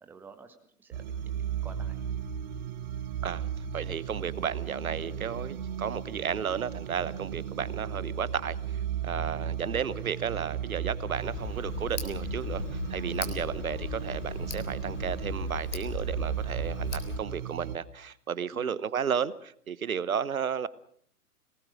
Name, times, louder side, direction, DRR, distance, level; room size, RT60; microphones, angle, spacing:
voice 1, 0.0-2.0 18.5-18.8, right 4 dB, 5° right, 8 dB, 0.8 m, -51 dB
sound 1, 0.9-17.8, right 8 dB, 30° right, 1.1 m, -35 dB
voice 2, 3.7-20.7, right 7 dB, 60° right, 18 dB, 1.1 m, -33 dB
Tick, 11.1-17.2, left 5 dB, 50° left, 3.5 m, -37 dB
23.0 x 19.0 x 6.3 m, 0.63 s
figure-of-eight pair, 125°, 47 cm